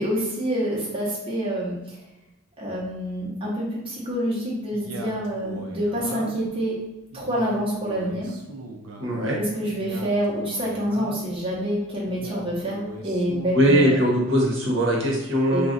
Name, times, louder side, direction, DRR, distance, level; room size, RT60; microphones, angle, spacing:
voice 1, 0.0-1.8 2.6-6.8 7.1-8.3 9.4-13.9 15.5-15.6, equal, 25° right, -5 dB, 0.8 m, -27 dB
Male speech man speaking, 4.7-6.5 7.1-9.1 9.7-11.4 12.1-14.1, right 2 dB, 90° right, 0.5 m, -39 dB
voice 2, 9.0-9.4 13.5-15.7, equal, 60° right, -2 dB, 0.9 m, -21 dB
2.4 x 2.1 x 3.8 m, 0.99 s
head